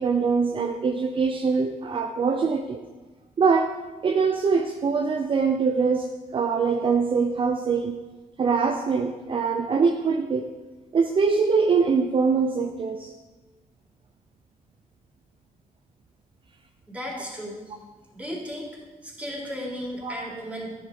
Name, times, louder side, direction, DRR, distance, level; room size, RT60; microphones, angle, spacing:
voice 1, 0.0-2.8 3.4-3.7 4.0-8.0 8.4-10.5 10.9-13.1 20.0-20.2, right 5 dB, 40° right, 4 dB, 0.7 m, -23 dB
voice 2, 16.9-17.6 18.1-18.7 19.0-20.7, equal, 10° right, -3 dB, 3.5 m, -34 dB
12.5 x 10.5 x 5.4 m, 1.2 s
wide cardioid pair, 155°, 14 cm